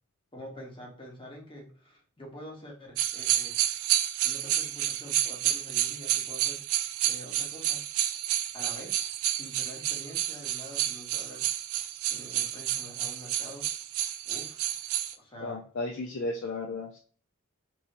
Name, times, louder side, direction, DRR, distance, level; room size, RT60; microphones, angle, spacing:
voice 1, 0.3-3.6 4.2-6.6 7.0-7.8 8.5-9.0 9.3-11.5 12.1-13.7 14.3-14.7 15.2-15.6, equal, 25° left, 0 dB, 0.8 m, -46 dB
sound 1, 3.0-15.1, right 12 dB, 75° right, 0.3 m, -30 dB
voice 2, 15.4-17.0, left 2 dB, 60° left, 2 dB, 0.4 m, -34 dB
3.0 x 2.6 x 2.5 m, 0.43 s
head